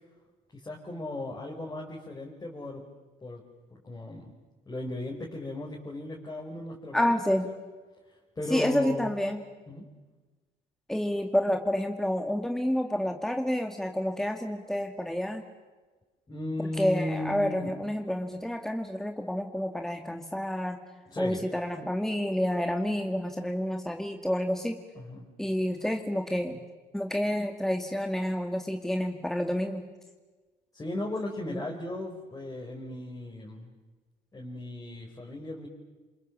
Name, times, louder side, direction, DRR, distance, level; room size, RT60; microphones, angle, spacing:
voice 1, 0.6-2.8 3.2-3.4 3.7-4.4 4.6-7.5 8.1-9.1 9.7-9.9 16.3-17.7 21.1-21.4 24.9-25.3 30.7-33.7 34.3-35.7, left 1 dB, 20° left, -2 dB, 4.9 m, -36 dB
voice 2, 6.9-7.5 8.5-9.4 10.9-15.4 16.6-20.8 21.2-24.8 25.4-26.6 26.9-29.8 31.5-31.6, equal, ahead, 4 dB, 2.1 m, -29 dB
28.0 x 27.0 x 7.5 m, 1.3 s
cardioid pair, 110°, 17 cm